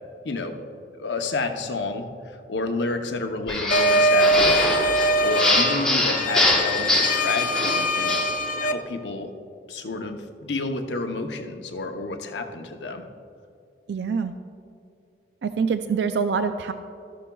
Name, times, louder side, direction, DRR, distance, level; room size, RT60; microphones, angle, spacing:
voice 1, 0.2-0.6 1.0-4.8 5.2-8.2 8.6-9.3 9.7-13.0, left 3 dB, 85° left, 5 dB, 0.8 m, -30 dB
sound 1, 3.5-8.4, left 1 dB, 5° left, 1.2 m, -24 dB
sound 2, 3.7-8.7, equal, 45° left, 0.5 m, -22 dB
voice 2, 13.9-14.3 15.4-16.7, right 5 dB, 80° right, 9 dB, 0.4 m, -25 dB
13.0 x 11.5 x 2.3 m, 2.4 s
head